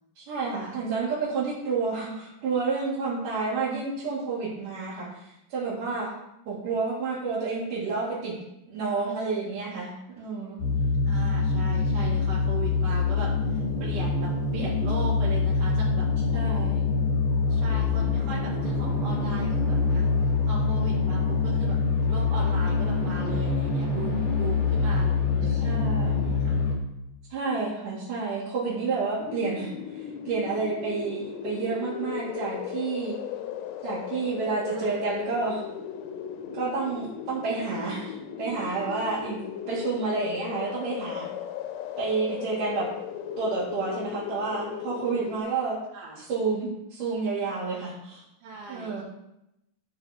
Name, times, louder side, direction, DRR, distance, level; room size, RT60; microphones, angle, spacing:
voice 1, 0.2-5.1 5.5-6.1 6.5-8.4 8.7-10.6 16.3-16.8 25.5-26.1 27.3-29.7 30.3-33.2 33.8-35.6 36.5-39.4 39.7-41.3 42.0-42.9 43.4-45.8 46.2-48.2 48.7-49.0, right 4 dB, 55° right, -11 dB, 3.6 m, -30 dB
sound 1, 10.6-26.8, left 4 dB, 45° left, 2.7 m, -25 dB
voice 2, 11.1-16.1 16.4-16.5 17.5-21.8 22.0-26.6 34.7-35.0 45.9-46.2 48.4-49.0, right 4 dB, 85° right, -9 dB, 3.9 m, -39 dB
sound 2, 29.2-45.4, left 9 dB, 90° left, 2.8 m, -36 dB
13.0 x 4.7 x 4.9 m, 0.84 s
omnidirectional pair, 4.7 m